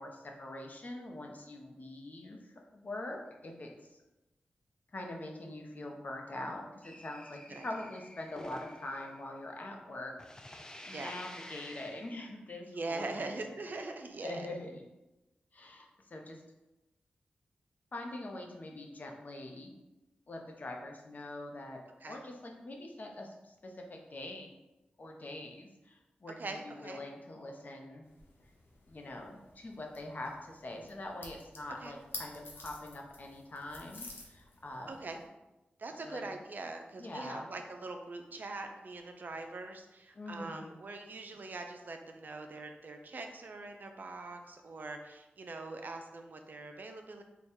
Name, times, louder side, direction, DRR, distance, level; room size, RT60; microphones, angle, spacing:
voice 1, 0.0-3.9 4.9-10.1 10.9-13.6 14.2-14.9 15.5-16.4 17.9-19.7 20.3-21.8 22.1-24.5 25.0-28.0 28.9-35.0 36.0-36.2 37.0-37.5 40.1-40.7, left 1 dB, 50° left, 1 dB, 0.7 m, -44 dB
sound 1, 6.8-9.9 10.2-12.3, left 1 dB, 20° left, 0.4 m, -50 dB
voice 2, 12.7-14.5 22.0-22.2 26.4-27.0 31.8-31.9 34.9-35.2 35.8-47.2, right 3 dB, 60° right, 4 dB, 0.5 m, -42 dB
sound 2, 28.0-35.2, left 3 dB, 85° left, 0.7 m, -51 dB
3.4 x 2.3 x 4.3 m, 1.0 s
cardioid pair, 50°, 4 cm